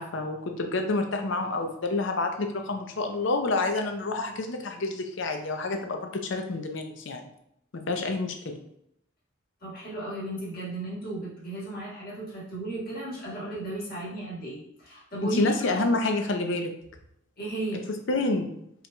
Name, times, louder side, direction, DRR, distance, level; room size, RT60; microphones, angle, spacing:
voice 1, 0.0-7.3 7.9-8.6 15.2-16.7 18.1-18.5, left 2 dB, 60° left, 5 dB, 0.6 m, -28 dB
voice 2, 9.6-15.5 17.4-17.8, right 1 dB, 45° left, -6 dB, 1.6 m, -35 dB
4.5 x 3.9 x 2.2 m, 0.76 s
head